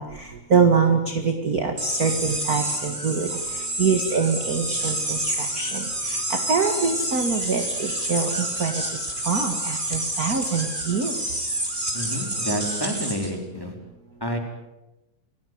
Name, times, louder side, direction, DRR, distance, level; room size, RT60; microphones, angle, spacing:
voice 1, 0.0-3.3 3.8-11.1, right 5 dB, 35° right, 6 dB, 1.9 m, -24 dB
sound 1, 1.8-13.3, right 1 dB, 15° right, 4.3 m, -28 dB
voice 2, 11.9-13.7 14.2-14.4, equal, 5° left, 3 dB, 4.2 m, -29 dB
29.0 x 18.0 x 9.5 m, 0.99 s
omnidirectional pair, 3.6 m